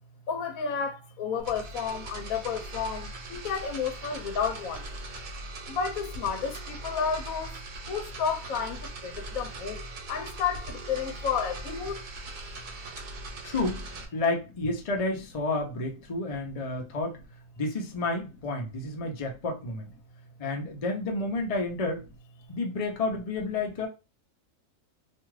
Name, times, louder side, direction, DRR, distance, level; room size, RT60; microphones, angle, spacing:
voice 1, 0.3-4.8 5.7-7.5 7.9-8.8 9.0-9.8 10.1-12.0, left 6 dB, 70° left, 1.0 m, -31 dB
sound 1, 1.4-14.1, right 2 dB, 70° right, 1.1 m, -40 dB
voice 2, 13.4-13.9 14.1-17.2 17.6-19.9 20.4-22.0 22.5-23.9, left 2 dB, 50° left, 0.4 m, -30 dB
2.6 x 2.3 x 3.1 m
omnidirectional pair, 1.6 m